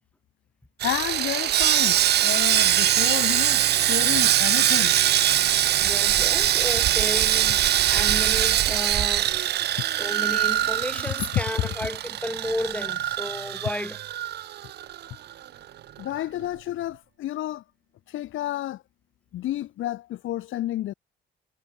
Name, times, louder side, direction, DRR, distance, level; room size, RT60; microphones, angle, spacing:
voice 1, 0.8-5.0 16.0-17.6 18.1-18.8 19.3-20.9, left 14 dB, 80° left, 1.8 m, -31 dB
Sawing, 0.8-15.1 15.3-15.5 16.0-16.1, right 12 dB, 55° right, 0.5 m, -22 dB
voice 2, 5.8-9.3 9.9-14.0, left 1 dB, 5° left, 3.6 m, -33 dB
cardioid pair, 90°, 20 cm